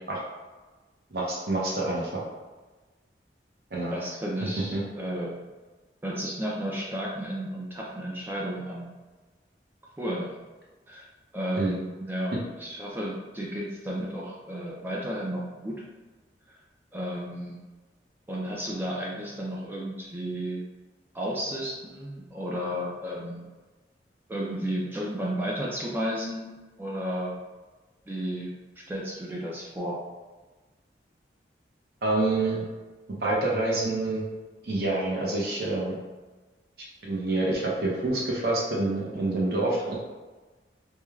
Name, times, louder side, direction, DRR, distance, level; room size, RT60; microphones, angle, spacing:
voice 1, 1.1-2.1 3.7-4.0 4.7-4.8 11.6-11.7 32.0-32.6 33.2-34.2 34.6-36.0 37.0-40.0, right 2 dB, 60° right, -4 dB, 0.6 m, -27 dB
voice 2, 3.9-5.4 6.0-8.9 10.0-10.3 10.9-11.1 11.3-15.8 16.5-16.6 16.9-17.6 18.3-20.6 21.1-23.4 24.3-26.5 26.8-27.4 28.1-30.0, equal, 10° right, -4 dB, 0.3 m, -33 dB
3.1 x 2.1 x 2.3 m, 1.2 s
head